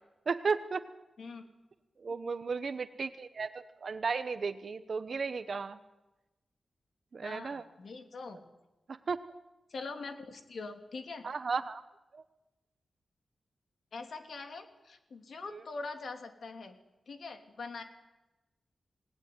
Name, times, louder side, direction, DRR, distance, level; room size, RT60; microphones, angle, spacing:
voice 1, 0.3-0.8 2.0-5.8 7.1-7.6 8.9-9.2 11.2-11.8 12.1-12.2 15.5-15.6, right 5 dB, 45° right, 11 dB, 1.0 m, -34 dB
voice 2, 7.2-8.4 9.7-11.3 13.9-16.8 17.1-17.8, left 3 dB, 60° left, 7 dB, 3.0 m, -43 dB
28.5 x 19.5 x 9.5 m, 1.0 s
wide cardioid pair, 180°, 0 cm